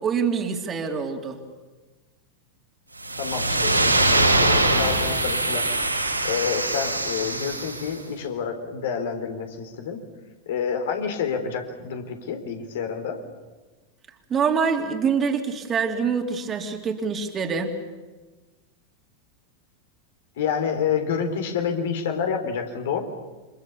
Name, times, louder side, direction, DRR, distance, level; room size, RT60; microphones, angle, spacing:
voice 1, 0.0-1.4 14.3-17.7, right 6 dB, 25° right, 4 dB, 3.1 m, -25 dB
sound 1, 3.0-7.9, right 2 dB, 85° right, 6.4 m, -23 dB
voice 2, 3.2-5.7 6.2-10.0 10.5-13.2 20.4-23.0, left 7 dB, 55° left, 5 dB, 3.9 m, -28 dB
28.5 x 25.5 x 7.1 m, 1.2 s
figure-of-eight pair, 90°, 0 cm